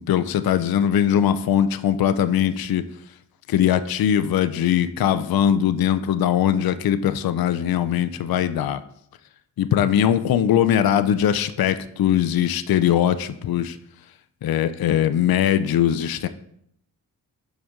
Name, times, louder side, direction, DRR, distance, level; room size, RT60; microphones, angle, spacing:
voice 1, 0.0-2.8 3.5-8.8 9.6-13.8 14.4-16.3, left 10 dB, 55° left, 11 dB, 0.5 m, -21 dB
5.1 x 5.0 x 3.6 m, 0.72 s
supercardioid pair, 40°, 43 cm